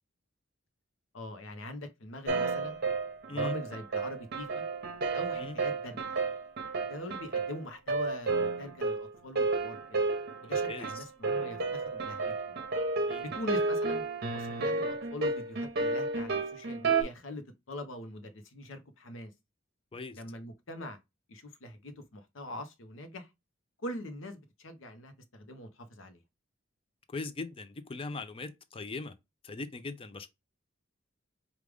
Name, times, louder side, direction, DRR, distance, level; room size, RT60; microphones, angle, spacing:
voice 1, 1.1-2.8 3.3-4.6 5.1-6.0 6.9-10.1 10.4-12.6 13.2-14.0 14.3-19.3 20.1-21.0 21.3-23.3 23.8-26.2, left 1 dB, 70° left, 0.8 m, -43 dB
sound 1, 2.3-17.0, right 3 dB, 50° right, 0.8 m, -32 dB
voice 2, 10.4-11.0 13.1-13.3 19.9-20.2 27.1-29.1 29.4-30.3, left 3 dB, 25° left, 0.4 m, -40 dB
4.9 x 2.4 x 3.4 m
head